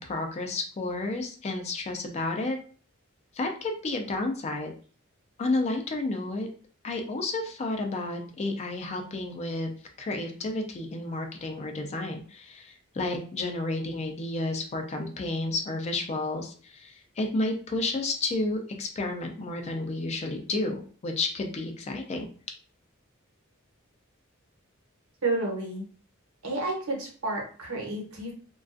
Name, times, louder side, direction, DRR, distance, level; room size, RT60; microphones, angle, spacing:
voice 1, 0.0-2.6 3.3-4.7 5.4-6.5 6.8-9.7 10.0-22.3, left 2 dB, 30° left, 4 dB, 0.3 m, -31 dB
voice 2, 25.2-25.9 26.4-28.3, right 2 dB, 85° right, -1 dB, 0.9 m, -30 dB
2.4 x 2.3 x 2.4 m, 0.42 s
head